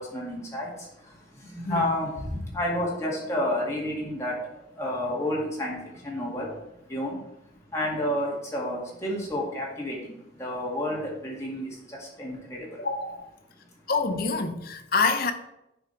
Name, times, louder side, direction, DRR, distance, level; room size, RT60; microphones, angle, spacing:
voice 1, 0.0-12.9 13.5-13.8, left 1 dB, 15° left, 2.0 m, -31 dB
voice 2, 12.8-13.3 13.9-15.3, left 4 dB, 50° left, 0.7 m, -26 dB
9.1 x 5.0 x 4.5 m
head